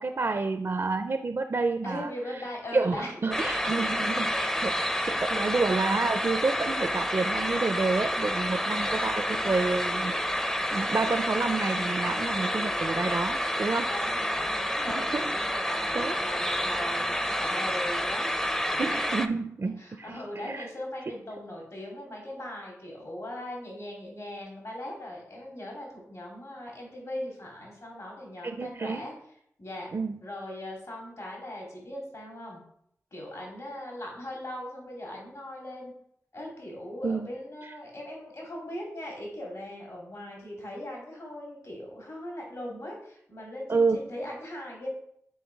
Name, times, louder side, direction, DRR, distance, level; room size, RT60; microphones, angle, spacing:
voice 1, 0.0-2.1 2.7-13.9 14.9-15.2 15.9-16.2 18.8-20.1 20.4-20.7 28.4-29.0 29.9-30.2 37.0-37.3 43.7-44.0, right 3 dB, 55° right, 8 dB, 0.4 m, -29 dB
voice 2, 1.8-3.4 3.8-4.3 4.9-5.6 13.8-18.3 18.7-19.1 19.6-29.1 29.6-29.9 30.2-32.6 33.1-35.9 36.3-44.9, left 1 dB, 70° left, -2 dB, 2.7 m, -40 dB
sound 1, 3.3-19.3, equal, 10° left, 0.5 m, -29 dB
5.5 x 4.7 x 4.6 m, 0.72 s
wide cardioid pair, 55°, 6 cm